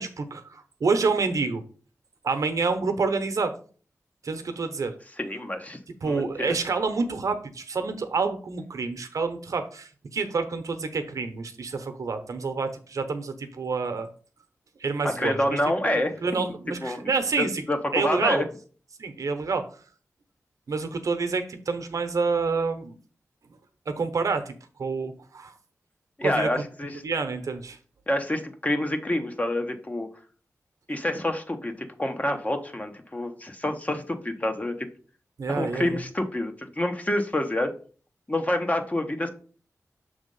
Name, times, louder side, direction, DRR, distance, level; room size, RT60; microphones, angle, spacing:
voice 1, 0.0-1.6 2.2-3.5 4.2-4.9 6.0-14.1 14.8-15.6 15.8-17.6 17.9-18.5 19.0-19.6 20.7-23.0 23.9-24.5 24.8-25.5 26.2-26.6 27.0-27.8 35.4-36.0, right 4 dB, 75° right, 8 dB, 0.9 m, -28 dB
voice 2, 5.2-6.5 15.0-16.4 16.8-18.4 26.2-27.0 28.1-30.1 30.9-34.9 35.5-37.7 38.3-39.3, left 1 dB, 25° left, 5 dB, 1.0 m, -28 dB
6.2 x 3.5 x 5.3 m, 0.41 s
cardioid pair, 65°, 6 cm